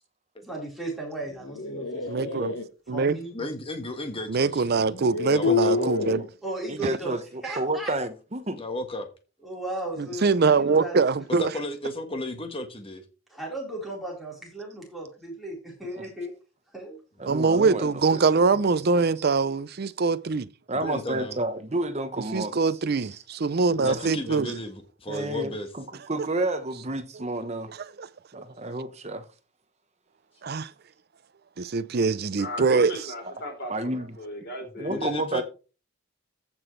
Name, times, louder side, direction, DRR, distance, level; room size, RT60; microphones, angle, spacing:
voice 1, 0.4-2.4 2.9-3.5 6.4-7.1 7.4-7.9 9.4-11.0 13.3-16.3 16.7-17.0, right 1 dB, ahead, 4.2 m, -36 dB
sound 1, 1.3-2.6 4.1-4.2 4.9-6.3, left 4 dB, 65° left, 1.1 m, -28 dB
voice 2, 2.1-2.6 2.9-3.2 4.3-6.2 7.4-7.6 10.0-11.5 17.3-20.5 22.3-24.5 27.7-28.1 30.4-30.7 31.6-32.9, right 4 dB, 50° right, 0.5 m, -23 dB
voice 3, 3.3-5.7 8.6-9.1 11.4-13.0 20.7-21.4 23.8-25.7 34.9-35.4, left 1 dB, 25° left, 1.5 m, -34 dB
voice 4, 5.6-6.3 6.7-8.6 10.7-10.8 16.0-16.1 17.2-18.2 18.9-19.0 20.7-22.5 23.0-23.1 23.9-24.1 25.1-27.7 28.3-29.3 33.3-33.4 33.7-34.2 34.8-35.4, right 2 dB, 30° right, 1.0 m, -31 dB
voice 5, 32.4-35.2, left 1 dB, 50° left, 3.6 m, -37 dB
14.5 x 5.9 x 3.2 m
head